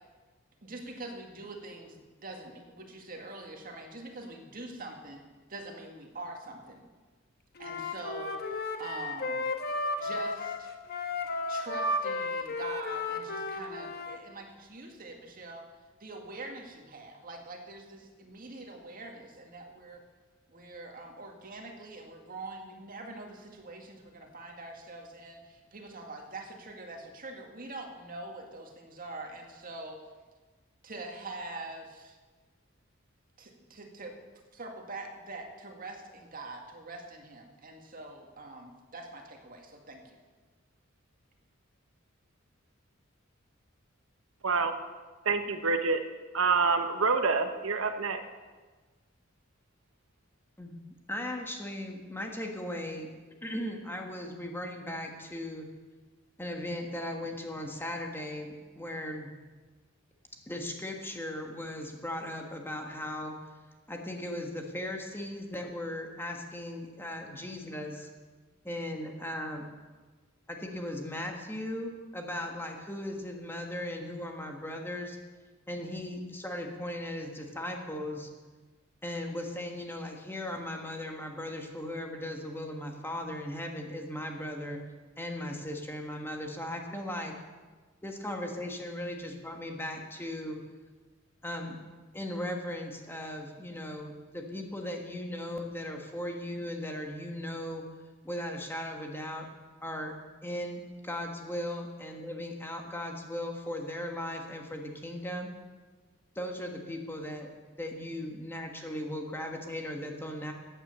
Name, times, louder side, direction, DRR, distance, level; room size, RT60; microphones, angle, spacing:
voice 1, 0.6-6.8 7.6-9.4 10.0-10.7 11.5-15.6 16.0-20.0 20.5-30.0 30.8-32.2 33.4-34.1 34.5-40.2, right 2 dB, 45° right, 3 dB, 2.0 m, -44 dB
Wind instrument woodwind instrument, 7.6-14.2, left 2 dB, 50° left, 1.2 m, -33 dB
voice 2, 44.4-44.7 45.2-46.0 46.3-48.2, right 4 dB, 90° right, 7 dB, 1.0 m, -27 dB
voice 3, 51.1-53.1 53.4-55.7 56.4-59.3 60.5-63.4 63.9-68.1 68.6-69.7 70.5-75.2 75.7-78.3 79.0-84.8 85.2-87.3 88.0-90.6 91.4-91.8 92.1-97.8 98.2-99.5 99.8-100.1 100.4-105.5 106.3-107.5 107.8-110.5, left 1 dB, 10° left, 2 dB, 1.5 m, -37 dB
15.0 x 9.3 x 6.8 m, 1.3 s
head